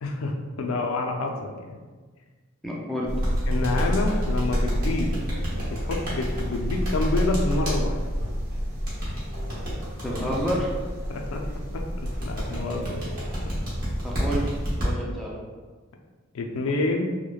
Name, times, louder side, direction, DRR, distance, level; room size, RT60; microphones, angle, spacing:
voice 1, 0.0-1.8 3.5-5.2 5.6-8.1 9.0-9.1 9.6-9.7 11.1-11.4 11.7-13.0 16.3-17.0, left 2 dB, 85° left, 2 dB, 0.4 m, -28 dB
voice 2, 2.6-3.1 10.0-10.7 14.0-14.5 14.8-15.4, equal, ahead, -4 dB, 0.3 m, -29 dB
sound 1, 3.1-14.8, equal, 90° right, 1.1 m, -29 dB
sound 2, 3.2-7.8 8.9-10.5 12.0-14.9, equal, 45° right, 0.9 m, -31 dB
3.0 x 2.1 x 2.3 m, 1.4 s
head